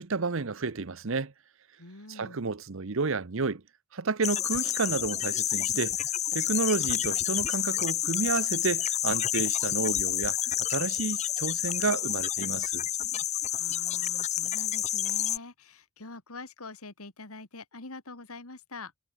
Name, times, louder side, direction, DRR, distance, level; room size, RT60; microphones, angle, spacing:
voice 1, 0.0-1.3 2.1-3.6 3.9-6.0 6.3-10.4 10.7-12.8, right 4 dB, 65° right, 0.8 m, -31 dB
voice 2, 1.8-2.5 13.5-18.9, left 3 dB, 80° left, 2.6 m, -45 dB
sound 1, 4.2-15.4, left 12 dB, 30° left, 0.4 m, -29 dB
head